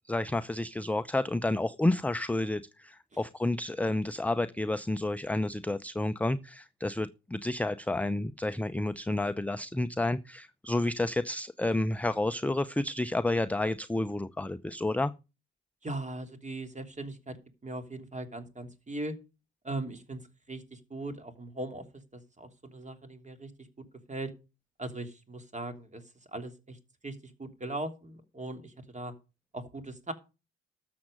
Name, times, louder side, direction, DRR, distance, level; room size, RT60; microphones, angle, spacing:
voice 1, 0.1-15.1, left 2 dB, 5° left, 12 dB, 0.7 m, -30 dB
voice 2, 15.8-17.4 17.6-19.1 19.6-20.2 20.5-21.8 22.1-23.5 24.1-24.3 24.8-26.0 26.3-26.8 27.0-29.1 29.5-30.1, right 2 dB, 25° right, 8 dB, 3.0 m, -39 dB
13.0 x 7.6 x 5.1 m, 0.29 s
hypercardioid pair, 60°, 31 cm